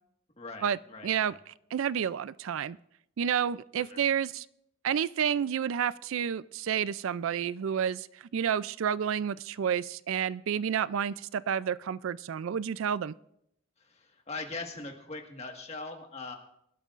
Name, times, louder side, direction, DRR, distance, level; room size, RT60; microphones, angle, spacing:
voice 1, 0.4-1.4 3.7-4.0 13.8-16.4, left 3 dB, 30° left, 3 dB, 1.6 m, -41 dB
voice 2, 1.0-2.8 3.2-4.5 4.8-8.1 8.3-13.1, right 8 dB, 75° right, 18 dB, 0.3 m, -30 dB
24.0 x 12.0 x 2.5 m, 0.77 s
head